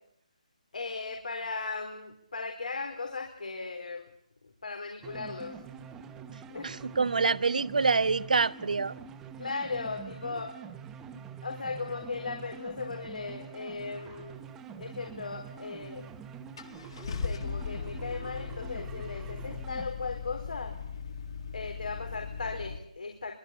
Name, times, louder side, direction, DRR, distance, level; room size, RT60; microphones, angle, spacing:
voice 1, 0.7-4.1 4.6-5.6 6.5-6.8 9.4-10.5 11.4-14.4 14.8-16.1 16.6-16.7 17.0-20.8 21.5-23.3, left 4 dB, 85° left, 4.3 m, -37 dB
sound 1, 5.0-19.9, right 7 dB, 10° right, 1.1 m, -46 dB
voice 2, 6.3-9.0, right 4 dB, 80° right, 1.1 m, -27 dB
Car / Engine starting, 15.9-16.0 16.6-22.8, left 5 dB, 40° left, 1.7 m, -38 dB
24.0 x 24.0 x 8.6 m
hypercardioid pair, 170°, 4 cm